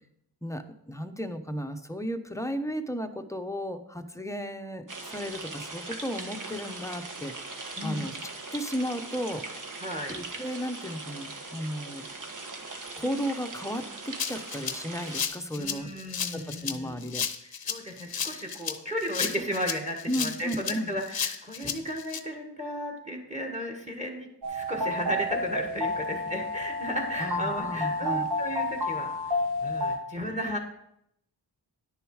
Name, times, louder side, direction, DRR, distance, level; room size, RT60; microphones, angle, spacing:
voice 1, 0.4-7.3 7.8-9.4 10.1-12.0 13.0-15.9 16.3-17.2 20.1-20.9 27.2-28.3, equal, 5° left, 7 dB, 0.8 m, -34 dB
sound 1, 4.9-15.3, right 3 dB, 50° right, 1.3 m, -40 dB
voice 2, 7.8-8.1 9.8-10.1 15.6-17.0 17.6-29.1 29.6-30.6, equal, 15° right, 2 dB, 1.7 m, -34 dB
Rattle (instrument), 14.2-22.2, left 7 dB, 60° left, 0.8 m, -33 dB
sound 2, 24.4-30.0, left 1 dB, 75° right, 1.9 m, -30 dB
10.5 x 6.8 x 4.9 m, 0.77 s
wide cardioid pair, 85°, 41 cm